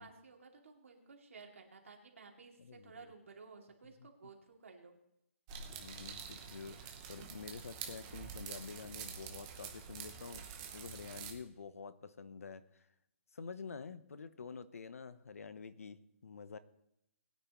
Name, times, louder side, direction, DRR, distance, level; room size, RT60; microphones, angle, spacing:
voice 1, 0.0-4.9, right 4 dB, 65° right, 2 dB, 2.5 m, -55 dB
voice 2, 2.6-3.1 4.0-4.1 5.7-10.5 10.7-12.9 13.3-16.6, left 5 dB, 75° left, 13 dB, 1.0 m, -48 dB
sound 1, 5.5-11.3, right 7 dB, 15° right, 0.8 m, -47 dB
20.5 x 9.3 x 3.1 m, 0.78 s
hypercardioid pair, 180°, 8 cm